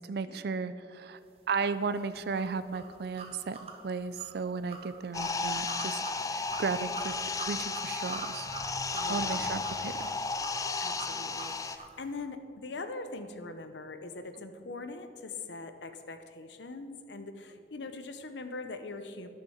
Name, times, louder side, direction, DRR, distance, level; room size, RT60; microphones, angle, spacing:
voice 1, 0.1-1.2 1.5-6.0 6.3-7.2 7.4-8.5 9.1-9.9, right 5 dB, 60° right, 12 dB, 0.4 m, -34 dB
sound 1, 1.9-12.0, right 4 dB, 35° right, 1.2 m, -45 dB
sound 2, 5.1-11.8, left 4 dB, 20° left, 0.4 m, -34 dB
voice 2, 8.9-9.5 10.8-19.3, left 3 dB, 85° left, 9 dB, 0.8 m, -42 dB
10.5 x 6.4 x 7.1 m, 2.4 s
head